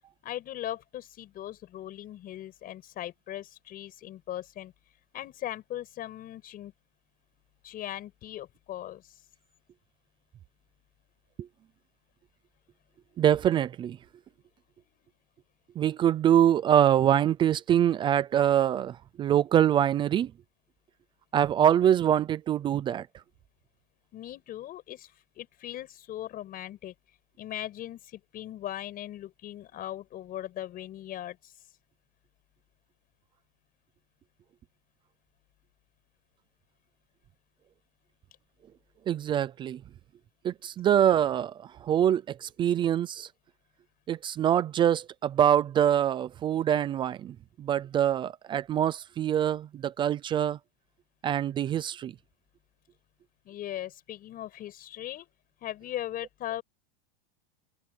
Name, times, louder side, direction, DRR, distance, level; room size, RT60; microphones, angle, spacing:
voice 1, 0.2-4.7 5.1-6.7 7.6-9.1 24.1-26.9 27.4-31.5 53.4-55.3 55.6-56.6, left 12 dB, 30° left, 6.3 m, -39 dB
voice 2, 13.2-14.0 15.8-20.3 21.3-23.1 39.1-39.8 40.4-43.3 44.1-50.6 51.2-52.1, right 10 dB, 15° right, 0.4 m, -24 dB
supercardioid pair, 160°, 30 cm